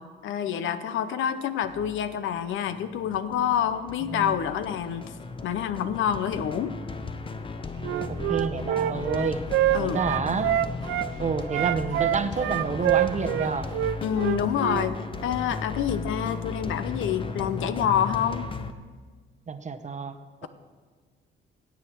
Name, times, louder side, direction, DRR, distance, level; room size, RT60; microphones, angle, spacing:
voice 1, 0.0-5.2 5.4-6.8 9.7-10.0 14.0-15.0 15.2-18.5, left 9 dB, 80° left, 12 dB, 0.7 m, -27 dB
sound 1, 1.6-18.7, left 4 dB, 25° left, 0.8 m, -36 dB
Wind instrument woodwind instrument, 7.8-11.1 11.5-14.9, right 13 dB, 80° right, 0.5 m, -26 dB
voice 2, 7.9-9.4 9.8-10.5 11.2-13.7 19.5-20.2, right 5 dB, 35° right, 10 dB, 0.9 m, -29 dB
16.5 x 8.4 x 4.6 m, 1.5 s
cardioid pair, 90°, 20 cm